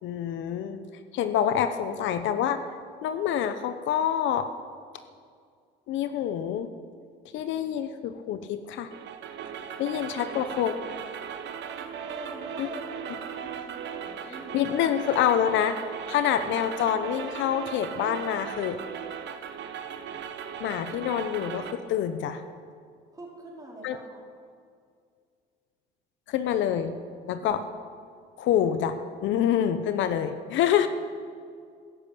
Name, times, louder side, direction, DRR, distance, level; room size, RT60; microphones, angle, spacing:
voice 1, 0.0-0.9 1.1-2.6 3.0-4.5 5.9-6.7 7.3-8.9 9.8-10.7 12.6-12.7 14.5-15.8 16.1-18.8 20.6-22.4 23.8-24.0 26.3-27.0 27.3-27.6 28.4-30.9, left 9 dB, 65° left, 10 dB, 0.9 m, -26 dB
sound 1, 8.9-21.7, right 8 dB, 60° right, 1.4 m, -38 dB
voice 2, 10.1-11.2 12.0-14.6 23.1-24.2 27.4-27.7, right 2 dB, 15° right, -3 dB, 4.6 m, -45 dB
14.5 x 11.5 x 8.5 m, 2.2 s
cardioid pair, 105°, 21 cm